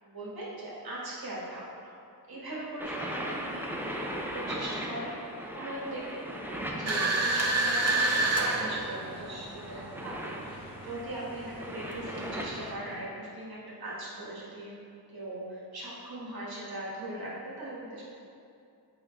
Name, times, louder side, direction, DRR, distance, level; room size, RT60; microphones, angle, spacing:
voice 1, 0.0-1.9 2.3-14.7 15.1-18.0, right 1 dB, 65° right, -6 dB, 1.5 m, -40 dB
sound 1, 2.8-13.0, equal, 5° right, 0.7 m, -39 dB
sound 2, 6.9-12.7, right 2 dB, 40° right, 0.8 m, -30 dB
6.3 x 5.2 x 3.1 m, 2.5 s
cardioid pair, 45°, 40 cm